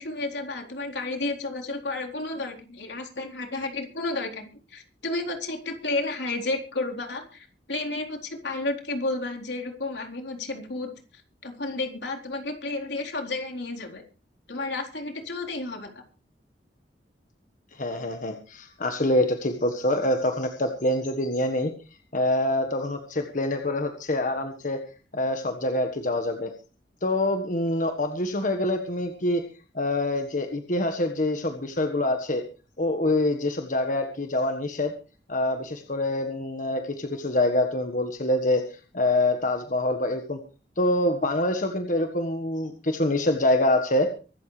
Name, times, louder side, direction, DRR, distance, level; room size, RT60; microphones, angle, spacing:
voice 1, 0.0-10.9 11.4-14.0 14.5-16.0, left 2 dB, 80° left, 2 dB, 4.0 m, -32 dB
voice 2, 17.7-21.7 22.1-24.8 25.1-26.5 27.0-29.4 29.7-32.4 32.8-34.9 35.3-38.6 38.9-40.4 40.8-44.1, left 1 dB, 50° left, 6 dB, 1.5 m, -25 dB
24.0 x 12.5 x 3.3 m, 0.35 s
head